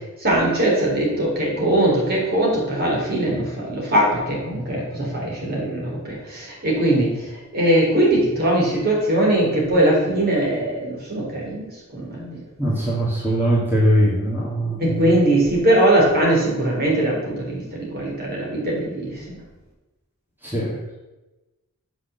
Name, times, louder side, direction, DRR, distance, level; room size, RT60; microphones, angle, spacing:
voice 1, 0.2-7.1 7.5-12.4 14.8-19.4, right 1 dB, 45° right, -3 dB, 3.8 m, -21 dB
voice 2, 12.6-15.1 20.4-20.8, right 1 dB, 10° right, -7 dB, 2.3 m, -21 dB
8.3 x 6.2 x 7.0 m, 1.1 s
head